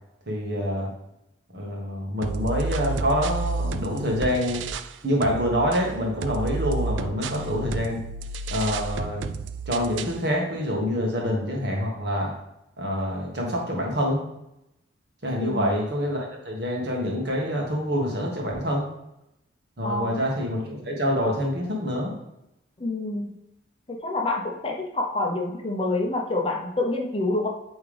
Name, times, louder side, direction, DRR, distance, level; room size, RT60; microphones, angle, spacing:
voice 1, 0.3-0.9 1.5-4.6 5.0-8.0 8.5-9.3 9.6-12.3 12.8-14.2 15.2-18.9 19.8-22.1, equal, 60° right, -1 dB, 1.6 m, -26 dB
sound 1, 2.2-5.0 5.2-10.2, right 3 dB, 80° right, 0.4 m, -31 dB
voice 2, 15.4-15.7 19.8-20.2 22.8-23.3 23.9-27.5, left 2 dB, 30° left, 1 dB, 0.7 m, -27 dB
8.7 x 3.6 x 3.4 m, 0.85 s
head